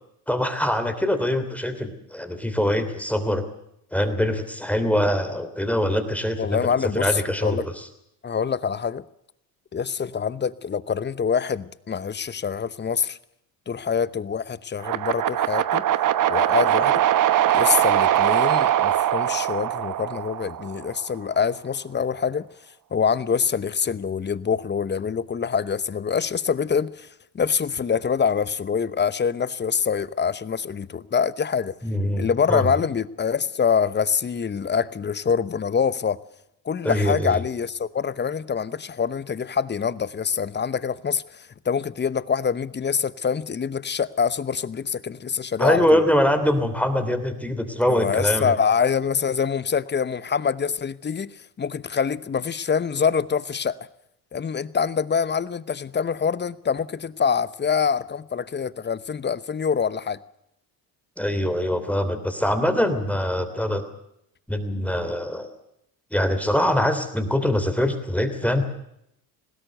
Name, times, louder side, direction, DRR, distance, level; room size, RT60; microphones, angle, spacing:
voice 1, 0.3-3.4 3.9-6.7 7.0-7.7 31.8-32.7 36.8-37.4 45.6-48.5 61.2-63.8 64.5-65.5 66.1-68.6, left 1 dB, 5° left, 3.1 m, -23 dB
voice 2, 6.4-7.7 8.2-9.0 9.7-13.2 13.7-15.8 16.3-17.0 17.5-22.5 22.9-27.1 27.3-31.7 32.2-36.2 36.6-46.0 47.9-53.8 54.3-60.2, left 6 dB, 25° left, 0.9 m, -25 dB
sound 1, 14.8-20.9, right 12 dB, 45° right, 1.0 m, -21 dB
20.5 x 16.5 x 7.9 m
supercardioid pair, 80°, 46 cm